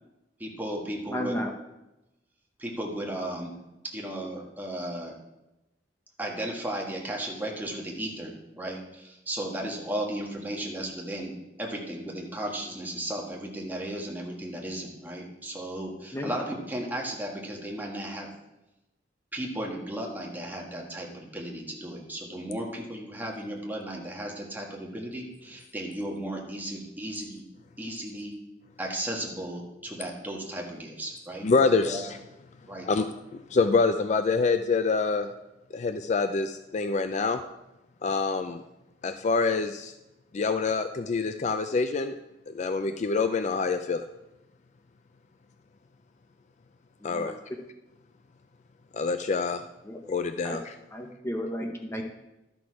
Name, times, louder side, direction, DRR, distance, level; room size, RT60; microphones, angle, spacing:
voice 1, 0.4-1.4 2.6-3.5 3.8-5.2 6.2-18.3 19.3-27.4 27.8-28.4 28.8-32.0 32.7-32.9, right 1 dB, 10° right, -1 dB, 1.6 m, -35 dB
voice 2, 1.1-1.5 16.1-16.3 47.0-47.3 49.8-50.0 50.4-50.6 50.9-52.0, equal, 15° left, 2 dB, 0.9 m, -33 dB
voice 3, 31.4-32.0 32.8-33.1 33.5-35.3 35.7-37.4 38.0-38.6 39.0-39.9 40.3-42.2 42.5-44.0 47.0-47.3 48.9-49.6 50.1-50.8, left 4 dB, 40° left, 8 dB, 0.4 m, -26 dB
12.0 x 6.2 x 4.8 m, 0.94 s
head